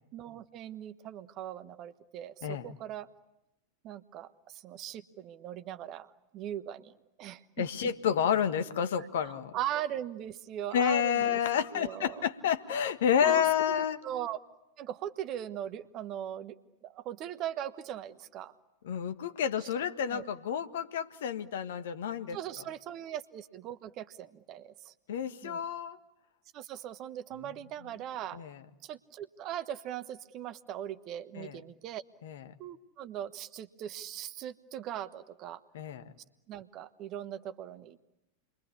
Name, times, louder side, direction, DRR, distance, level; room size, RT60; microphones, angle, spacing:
voice 1, 0.1-3.1 3.8-7.7 9.0-11.4 11.7-12.3 13.2-14.4 14.8-16.6 16.8-18.5 19.6-19.7 20.0-20.2 22.3-24.9 25.4-25.6 26.5-28.4 28.8-32.0 32.6-35.6 36.5-38.0, right 11 dB, 35° right, 13 dB, 1.2 m, -40 dB
voice 2, 2.4-2.7 7.6-9.5 10.7-14.0 18.8-22.4 25.1-26.0 28.3-28.6 31.4-31.6 32.2-32.4 35.7-36.0, left 8 dB, 60° left, 10 dB, 1.5 m, -30 dB
29.0 x 23.0 x 8.6 m, 0.94 s
figure-of-eight pair, 90°, 0 cm